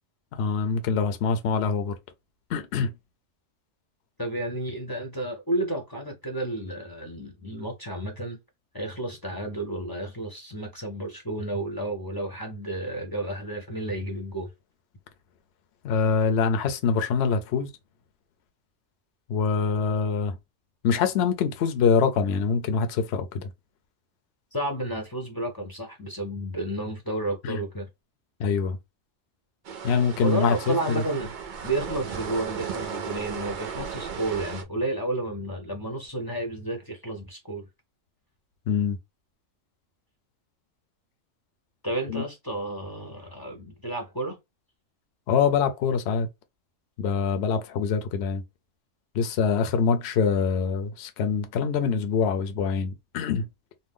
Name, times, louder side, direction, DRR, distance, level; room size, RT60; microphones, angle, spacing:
voice 1, 0.3-1.9 2.5-2.9 15.8-17.7 19.3-20.4 20.8-23.5 27.4-27.6 28.4-28.8 29.8-31.0 38.7-39.0 42.1-42.2 45.3-46.3 47.0-48.4 49.1-53.5, left 6 dB, 65° left, 0.8 m, -24 dB
voice 2, 4.2-8.4 8.7-14.5 24.5-27.9 30.2-31.3 31.6-37.7 41.8-44.4, right 1 dB, 25° left, 0.5 m, -31 dB
sound 1, 29.6-34.6, right 7 dB, 55° right, 0.6 m, -35 dB
2.6 x 2.2 x 3.5 m
omnidirectional pair, 1.3 m